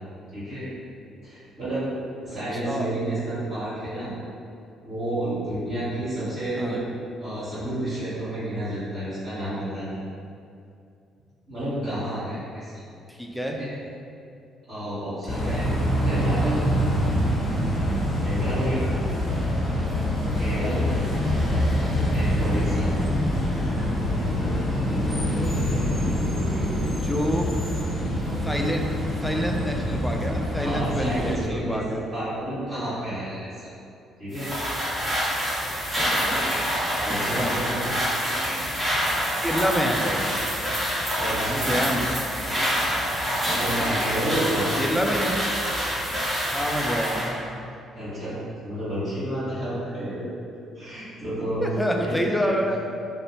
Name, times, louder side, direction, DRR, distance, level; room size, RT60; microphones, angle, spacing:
voice 1, 0.3-0.7 1.2-1.8 2.2-4.1 4.8-6.8 7.2-10.0 11.5-12.8 13.5-13.7 14.7-15.6 16.0-16.6 18.2-18.8 20.3-20.8 22.1-22.9 30.6-33.7 34.2-34.5 37.0-37.9 41.2-41.7 43.5-44.9 47.9-48.4 48.6-51.7 52.0-52.5, right 1 dB, 60° right, -17 dB, 1.2 m, -30 dB
voice 2, 13.1-13.6 15.4-15.6 26.8-27.5 28.4-32.0 37.3-37.6 39.4-40.3 41.5-42.3 43.7-44.1 44.8-45.4 46.5-47.4 51.6-52.8, equal, ahead, 1 dB, 0.3 m, -27 dB
sound 1, 15.3-31.3, equal, 20° left, 0.8 m, -25 dB
sound 2, 34.3-47.3, equal, 20° right, 1.0 m, -26 dB
2.5 x 2.0 x 2.9 m, 2.5 s
figure-of-eight pair, 45°, 0 cm